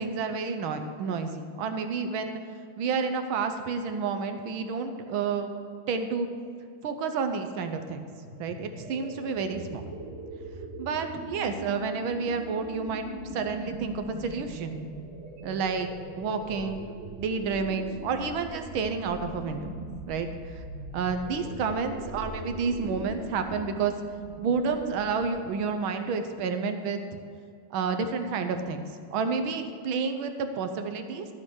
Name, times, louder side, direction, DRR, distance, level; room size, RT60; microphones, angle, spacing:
voice 1, 0.0-2.4 2.8-5.5 5.9-6.3 6.8-8.1 8.4-9.9 10.8-13.1 13.3-14.8 15.4-15.9 16.2-16.9 17.2-19.7 20.1-20.6 20.9-23.9 24.4-27.0 27.7-28.9 29.1-31.3, right 5 dB, 85° right, 7 dB, 1.6 m, -30 dB
sound 1, 8.1-25.7, right 1 dB, 60° right, 2.5 m, -41 dB
14.0 x 6.2 x 6.4 m, 2.3 s
omnidirectional pair, 2.2 m